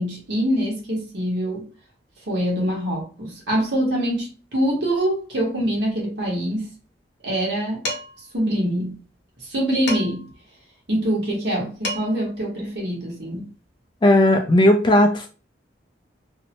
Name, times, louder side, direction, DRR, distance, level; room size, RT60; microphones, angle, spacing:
voice 1, 0.0-1.7 2.3-6.7 7.2-7.9 8.2-9.0 9.4-10.3 10.9-13.5, equal, 70° right, 1.0 m, -24 dB
Dishes pots and pans, 7.9-8.3 9.9-10.3 11.5-11.6 11.8-12.3, left 1 dB, 65° left, 0.8 m, -30 dB
voice 2, 14.0-15.3, left 1 dB, 25° left, 0.3 m, -16 dB
2.7 x 2.0 x 2.8 m
head